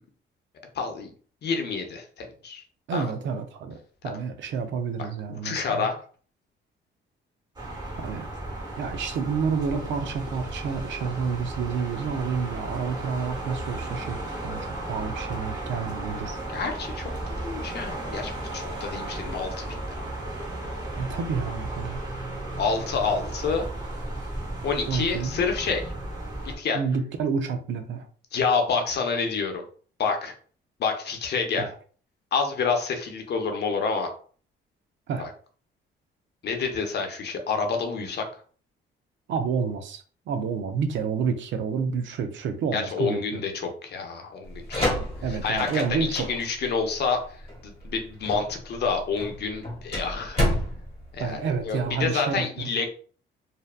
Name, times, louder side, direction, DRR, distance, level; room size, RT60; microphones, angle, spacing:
voice 1, 0.7-1.1 1.4-2.6 2.9-3.1 5.3-6.0 16.5-17.1 17.4-20.1 22.6-23.7 24.6-25.9 26.6-26.8 28.3-29.6 30.0-30.3 30.8-31.6 32.3-34.1 35.2-35.3 36.4-38.2 42.7-44.9 45.3-47.2 47.6-50.4 51.1-52.9, left 5 dB, 55° left, 4 dB, 0.7 m, -28 dB
voice 2, 2.9-3.8 4.0-5.9 8.0-8.3 8.8-16.4 21.0-22.1 24.9-25.3 26.7-28.1 31.6-31.7 35.1-35.3 39.3-43.4 45.2-46.3 51.2-52.7, right 6 dB, 70° right, 8 dB, 0.5 m, -29 dB
sound 1, 7.6-26.6, right 2 dB, 20° right, 1.0 m, -34 dB
sound 2, 44.5-52.0, equal, 30° left, 1.3 m, -30 dB
2.6 x 2.1 x 2.4 m, 0.43 s
cardioid pair, 90°, 20 cm